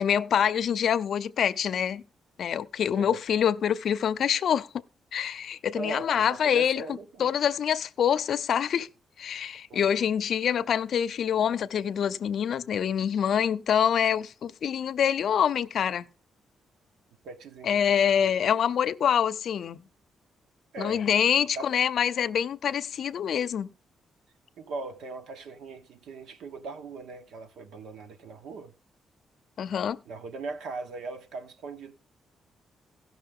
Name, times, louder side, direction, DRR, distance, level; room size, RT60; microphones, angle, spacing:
voice 1, 0.0-2.0 2.4-4.7 5.1-6.8 7.2-8.9 9.2-16.1 17.6-19.8 20.8-23.7 29.6-30.0, left 8 dB, 60° left, 0.5 m, -25 dB
voice 2, 5.7-7.3 9.7-10.0 17.2-18.3 20.7-21.0 21.5-21.7 24.6-28.7 30.0-31.9, right 3 dB, 90° right, 1.2 m, -40 dB
17.0 x 6.2 x 3.6 m
cardioid pair, 150°, 0 cm